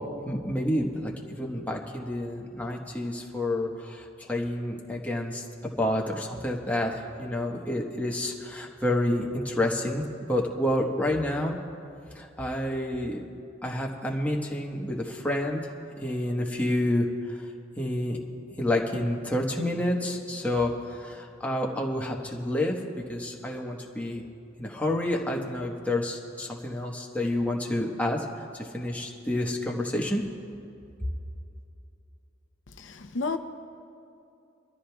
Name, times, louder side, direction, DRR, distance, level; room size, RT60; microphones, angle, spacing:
voice 1, 0.3-11.6 12.1-13.2 13.6-15.7 16.0-17.5 17.8-18.2 18.6-22.8 23.1-24.2 24.6-28.3 28.5-30.2, left 1 dB, 10° left, 1.2 m, -29 dB
voice 2, 32.8-33.4, left 4 dB, 85° left, 0.7 m, -31 dB
24.5 x 14.0 x 2.3 m
head